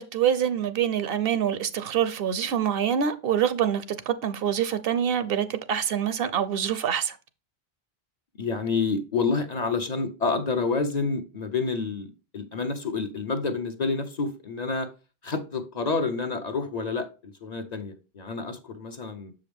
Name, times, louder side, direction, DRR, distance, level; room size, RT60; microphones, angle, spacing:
voice 1, 0.0-7.2, right 9 dB, 65° right, 0.7 m, -25 dB
voice 2, 8.4-14.9 15.2-19.3, left 4 dB, 45° left, 0.7 m, -28 dB
6.8 x 5.0 x 3.4 m
omnidirectional pair, 1.1 m